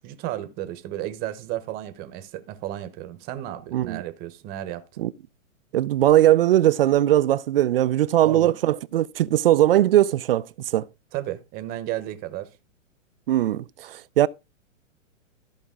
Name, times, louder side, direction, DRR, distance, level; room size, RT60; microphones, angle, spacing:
voice 1, 0.0-5.1 8.2-8.6 11.1-12.5, right 13 dB, 25° right, 0.9 m, -33 dB
voice 2, 3.7-4.0 5.0-5.1 5.7-10.5 10.7-10.8 13.3-14.3, right 13 dB, 45° right, 0.4 m, -20 dB
14.0 x 5.0 x 3.6 m
hypercardioid pair, 145°, 40 cm